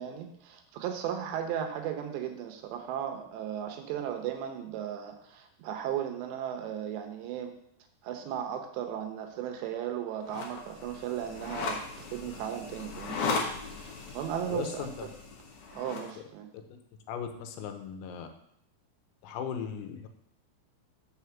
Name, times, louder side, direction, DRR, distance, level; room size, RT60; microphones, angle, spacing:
voice 1, 0.0-7.5 8.0-13.3 13.7-14.9 15.7-16.5, right 9 dB, 80° right, 4 dB, 3.0 m, -36 dB
sound 1, 10.2-16.1, left 4 dB, 65° left, 2.0 m, -37 dB
voice 2, 14.5-15.1 17.1-18.3 19.2-20.1, left 7 dB, 85° left, 6 dB, 3.2 m, -37 dB
6.6 x 4.8 x 6.9 m, 0.72 s
omnidirectional pair, 5.2 m